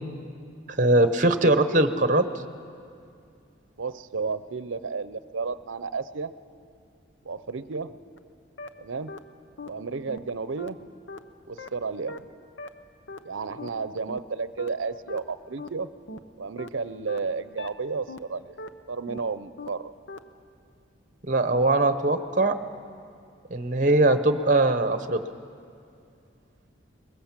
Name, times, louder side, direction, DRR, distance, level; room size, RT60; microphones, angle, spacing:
voice 1, 0.8-2.2 21.3-22.6 23.5-25.2, right 2 dB, 40° right, 10 dB, 0.9 m, -21 dB
voice 2, 3.8-6.3 7.2-8.0 8.8-9.1 9.7-10.9 11.5-12.3 13.2-15.9 16.4-18.5 18.9-19.9, right 4 dB, 80° right, 14 dB, 0.7 m, -32 dB
sound 1, 8.2-8.3 8.6-8.7 9.1-9.2 9.6-9.7 10.1-10.2 10.6-10.7 11.1-11.2 11.6-11.7 12.1-12.2 12.6-12.7 13.1-13.2 13.6-13.7 14.1-14.2 14.6-14.7 15.1-15.2 15.6-15.7 16.1-16.2 16.6-16.7 17.1-17.2 17.6-17.7 18.1-18.2 18.6-18.7 19.1-19.2 19.6-19.7 20.1-20.2, left 2 dB, 65° left, 0.9 m, -38 dB
23.0 x 21.0 x 7.4 m, 2.4 s
head